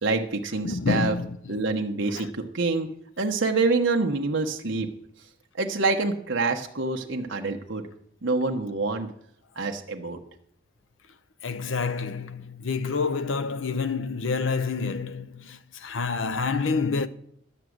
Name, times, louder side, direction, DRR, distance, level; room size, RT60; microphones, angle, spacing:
voice 1, 0.0-1.2 1.5-2.9 3.2-4.9 5.6-7.8 8.2-9.1 9.6-10.2, right 3 dB, 70° right, 1.0 m, -26 dB
voice 2, 0.6-1.4 2.1-2.3 11.4-17.1, left 4 dB, 80° left, 0.7 m, -28 dB
12.0 x 6.1 x 7.9 m
head